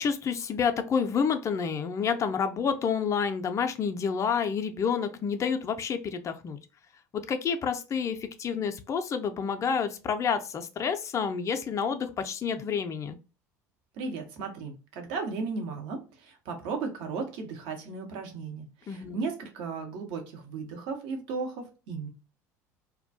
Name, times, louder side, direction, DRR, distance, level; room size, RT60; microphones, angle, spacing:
voice 1, 0.0-6.6 7.1-13.2 18.9-19.2, left 6 dB, 35° left, 0.4 m, -29 dB
voice 2, 14.0-22.1, right 4 dB, 65° right, 0.8 m, -35 dB
2.3 x 2.2 x 2.5 m
hypercardioid pair, 70°, 9 cm